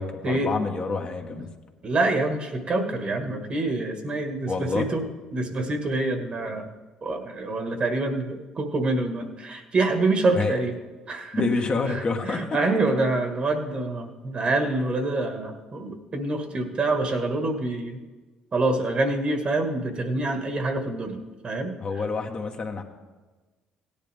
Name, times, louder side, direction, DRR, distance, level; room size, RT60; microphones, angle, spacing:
voice 1, 0.0-1.5 4.5-4.9 10.3-10.6 11.3-12.6 21.8-22.8, left 4 dB, 40° left, 3 dB, 1.4 m, -28 dB
voice 2, 1.8-5.0 5.3-6.7 7.0-10.7 11.1-11.5 11.8-18.0 18.5-21.8, right 2 dB, 45° right, 5 dB, 1.7 m, -26 dB
17.0 x 10.0 x 3.5 m, 1.3 s
supercardioid pair, 70°, 3 cm